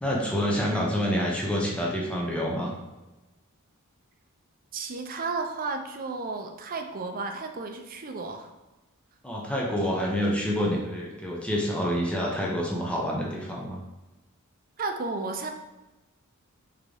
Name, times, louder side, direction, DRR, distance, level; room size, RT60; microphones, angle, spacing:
voice 1, 0.0-2.7 9.2-13.8, equal, 5° left, -3 dB, 0.6 m, -27 dB
voice 2, 4.7-8.5 14.8-15.5, right 3 dB, 40° right, 5 dB, 0.5 m, -33 dB
3.8 x 3.5 x 3.3 m, 1.1 s
head